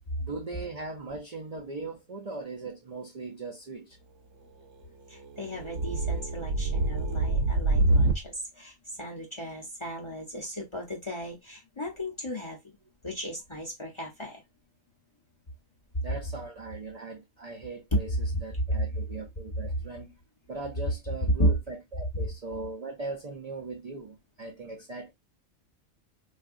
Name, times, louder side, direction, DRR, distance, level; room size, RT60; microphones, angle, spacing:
voice 1, 0.2-4.0 16.0-20.1 20.5-25.1, right 3 dB, 50° right, 0.5 m, -39 dB
voice 2, 5.1-12.6 13.0-14.4 17.9-18.0 18.7-19.2 19.5-20.1 21.4-21.5, equal, 30° left, 0.6 m, -33 dB
sound 1, 5.4-8.3, right 2 dB, 70° right, 0.9 m, -25 dB
3.4 x 2.5 x 2.4 m
omnidirectional pair, 1.3 m